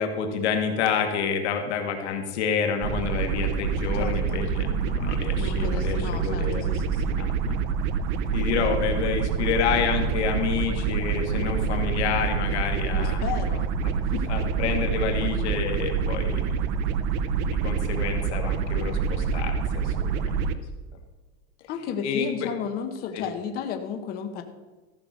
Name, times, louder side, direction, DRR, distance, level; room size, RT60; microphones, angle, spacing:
voice 1, 0.0-6.7 7.2-7.6 8.3-13.2 14.3-16.7 17.5-20.4 22.0-22.5 23.1-23.2, left 6 dB, 70° left, 5 dB, 1.7 m, -28 dB
sound 1, 2.8-20.5, right 6 dB, 40° right, 0.6 m, -26 dB
voice 2, 4.0-4.4 5.3-7.2 12.9-13.7 14.1-14.3 21.7-24.4, left 7 dB, 25° left, 7 dB, 0.8 m, -33 dB
14.0 x 5.8 x 6.3 m, 1.2 s
supercardioid pair, 165°, 34 cm